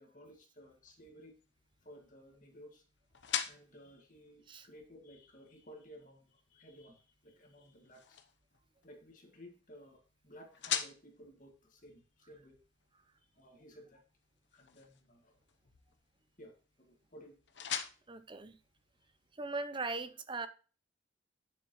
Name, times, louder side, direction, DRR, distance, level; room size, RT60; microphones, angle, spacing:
voice 1, 0.0-1.4 1.8-2.8 3.5-8.2 8.8-12.6 13.3-14.0 14.5-15.4 16.4-17.4, equal, 40° left, 2.0 m, -56 dB
sound 1, 0.6-19.4, left 9 dB, 65° left, 0.9 m, -46 dB
voice 2, 18.1-18.6 19.3-20.5, right 3 dB, 25° right, 0.6 m, -39 dB
9.6 x 6.9 x 3.1 m
head